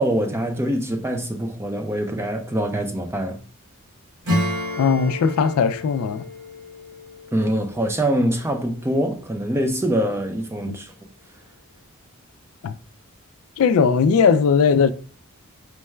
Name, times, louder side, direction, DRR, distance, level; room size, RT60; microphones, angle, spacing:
voice 1, 0.0-3.4 7.3-10.9, right 1 dB, 10° right, 0.4 m, -24 dB
Acoustic guitar / Strum, 4.2-8.5, left 1 dB, 85° right, 1.5 m, -30 dB
voice 2, 4.8-6.3 10.7-10.8 12.6-12.8 13.6-14.9, left 6 dB, 75° left, 0.3 m, -18 dB
4.6 x 2.2 x 3.1 m
head